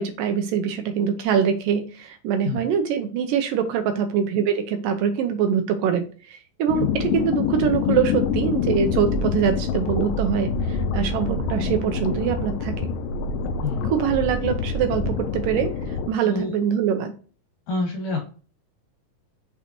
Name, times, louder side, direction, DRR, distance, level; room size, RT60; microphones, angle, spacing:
voice 1, 0.0-12.9 13.8-17.1, right 8 dB, 75° right, 7 dB, 2.2 m, -24 dB
sound 1, 6.7-16.1, left 5 dB, 80° left, 2.3 m, -26 dB
voice 2, 13.6-13.9 16.2-16.5 17.7-18.2, left 3 dB, 55° left, 2 dB, 3.0 m, -27 dB
6.4 x 5.5 x 2.8 m, 0.38 s
omnidirectional pair, 4.3 m